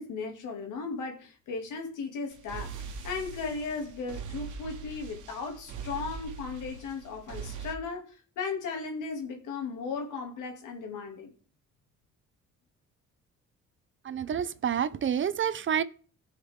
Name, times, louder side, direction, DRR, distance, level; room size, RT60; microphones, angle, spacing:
voice 1, 0.0-2.7 3.0-11.3, left 4 dB, 85° left, 2.5 m, -36 dB
sound 1, 2.3-7.7, right 5 dB, 85° right, 1.5 m, -41 dB
voice 2, 14.0-15.8, right 8 dB, 40° right, 0.6 m, -28 dB
15.5 x 5.7 x 3.6 m
cardioid pair, 90°, 30 cm